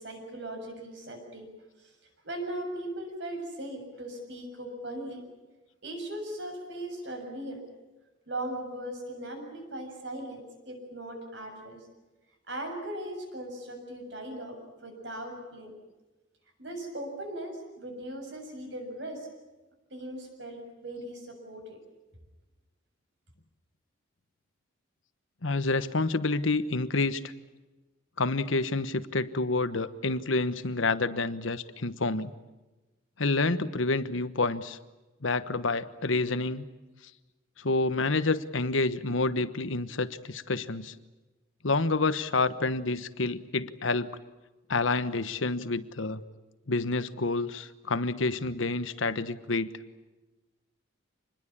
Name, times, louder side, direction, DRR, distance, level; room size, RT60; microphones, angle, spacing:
voice 1, 0.0-1.5 1.8-1.9 2.2-5.3 5.8-7.6 8.3-11.9 12.5-15.7 16.6-19.3 19.9-21.8, right 1 dB, 60° right, 4 dB, 7.1 m, -39 dB
voice 2, 25.4-27.2 28.2-32.3 33.2-34.8 35.2-36.6 37.6-40.9 41.6-44.1 44.7-46.2 46.7-49.7, left 3 dB, 80° left, 12 dB, 1.3 m, -28 dB
26.5 x 21.0 x 8.7 m, 1.1 s
head